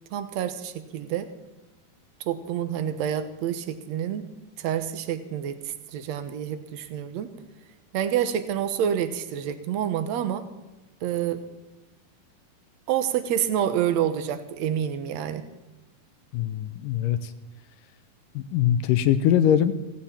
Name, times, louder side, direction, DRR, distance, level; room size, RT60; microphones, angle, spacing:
voice 1, 0.1-1.3 2.3-4.3 4.6-5.6 5.9-7.3 7.9-10.5 11.0-11.4 12.9-15.5, right 9 dB, 70° right, 10 dB, 1.7 m, -28 dB
voice 2, 16.3-17.3 18.4-19.7, left 10 dB, 75° left, 12 dB, 2.1 m, -22 dB
17.0 x 16.5 x 4.4 m, 1.0 s
omnidirectional pair, 4.3 m